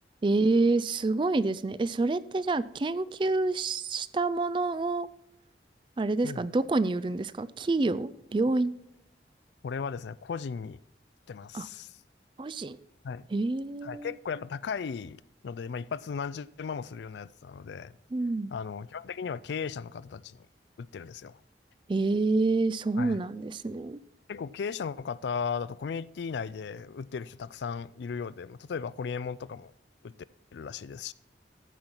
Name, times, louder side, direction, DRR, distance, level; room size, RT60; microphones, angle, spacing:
voice 1, 0.2-5.1 6.0-8.7 11.5-11.7 12.4-12.8 13.3-14.1 18.1-18.5 21.9-24.0, right 3 dB, 25° right, 0.3 m, -27 dB
voice 2, 9.6-10.8 11.3-11.9 13.0-13.3 13.8-17.9 18.5-20.5 20.8-21.4 23.0-23.2 24.3-29.7 30.0-30.1 30.5-31.1, left 6 dB, 75° left, 0.4 m, -36 dB
14.0 x 5.6 x 4.4 m
head